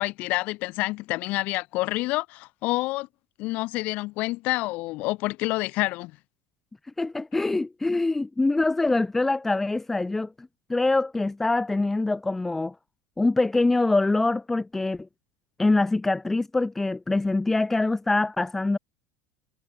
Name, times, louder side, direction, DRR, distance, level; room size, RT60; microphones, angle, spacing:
voice 1, 0.0-3.1 3.4-6.1, left 21 dB, 55° left, 0.9 m, -28 dB
voice 2, 7.0-12.7 13.2-15.1 15.6-18.8, left 2 dB, 10° left, 0.4 m, -24 dB
supercardioid pair, 135°, 3 cm